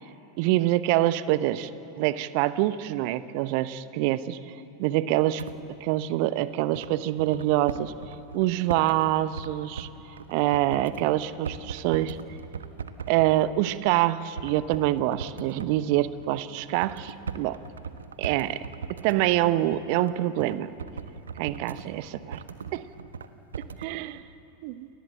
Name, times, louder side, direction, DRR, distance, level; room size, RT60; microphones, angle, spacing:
voice 1, 0.4-1.7 2.0-4.4 4.8-5.4 5.8-7.9 8.3-9.9 10.3-12.2 13.1-17.6 18.2-18.6 18.9-20.7 21.4-22.4 22.7-22.9 23.6-24.2 24.6-24.9, right 14 dB, 45° right, 15 dB, 0.9 m, -25 dB
sound 1, 5.4-5.6 6.0-6.1 6.7-9.1 9.4-9.5 9.8-13.4 13.9-14.0 14.4-23.3 23.5-23.9, right 6 dB, 70° right, 1.2 m, -39 dB
29.5 x 22.0 x 7.6 m, 2.9 s
figure-of-eight pair, 90°, 0 cm